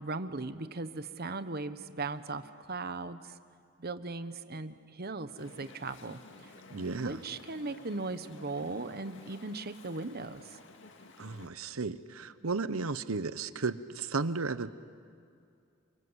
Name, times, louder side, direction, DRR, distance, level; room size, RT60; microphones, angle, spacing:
voice 1, 0.0-3.4 3.8-6.5 6.9-10.4, right 3 dB, 50° right, 1.1 m, -38 dB
Chatter / Stream, 5.4-11.5, left 2 dB, 60° left, 2.2 m, -53 dB
voice 2, 6.7-7.2 11.2-14.7, right 4 dB, 85° right, 0.9 m, -34 dB
28.5 x 25.0 x 8.1 m
head